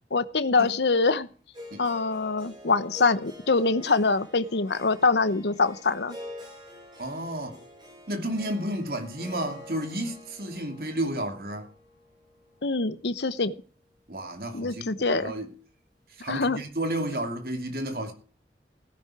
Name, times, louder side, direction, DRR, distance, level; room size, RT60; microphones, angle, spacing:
voice 1, 0.1-1.3 1.8-6.2 12.6-13.6 14.5-15.3 16.3-16.6, left 3 dB, 80° left, 1.0 m, -24 dB
Harp, 1.5-13.7, left 1 dB, 25° right, 6.2 m, -47 dB
voice 2, 7.0-7.6 8.1-11.7 14.1-15.5 16.2-18.1, right 1 dB, 55° right, 2.7 m, -32 dB
17.0 x 10.5 x 4.9 m
head